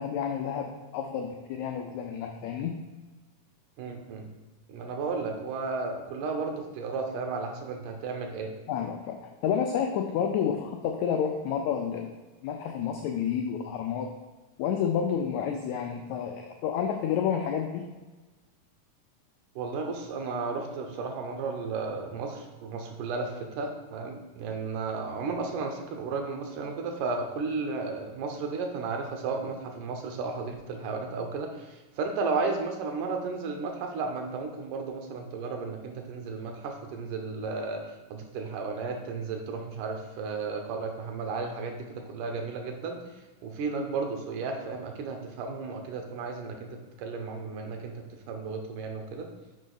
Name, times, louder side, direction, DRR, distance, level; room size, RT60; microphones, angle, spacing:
voice 1, 0.0-2.8 8.7-12.1 12.4-14.1 14.6-17.8, left 8 dB, 90° left, 3 dB, 1.6 m, -30 dB
voice 2, 3.8-4.3 4.7-8.5 19.6-37.8 38.1-43.0 43.4-46.7 47.0-47.9 48.3-49.3, right 4 dB, 80° right, 3 dB, 2.2 m, -33 dB
6.3 x 5.1 x 3.9 m, 1.2 s
omnidirectional pair, 3.9 m